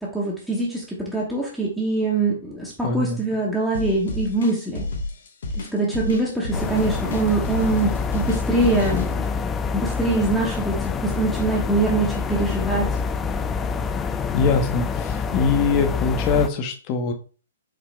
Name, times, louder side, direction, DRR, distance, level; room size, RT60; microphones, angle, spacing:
voice 1, 0.0-4.9 5.5-9.2 9.7-12.9, right 3 dB, ahead, -5 dB, 0.9 m, -23 dB
voice 2, 2.8-3.2 14.3-17.1, left 4 dB, 35° left, 5 dB, 0.9 m, -22 dB
sound 1, 3.7-9.1, left 2 dB, 70° left, 1.0 m, -30 dB
sound 2, 6.5-16.5, left 5 dB, 15° left, 0.3 m, -26 dB
5.0 x 2.8 x 3.4 m, 0.38 s
hypercardioid pair, 130°, 0 cm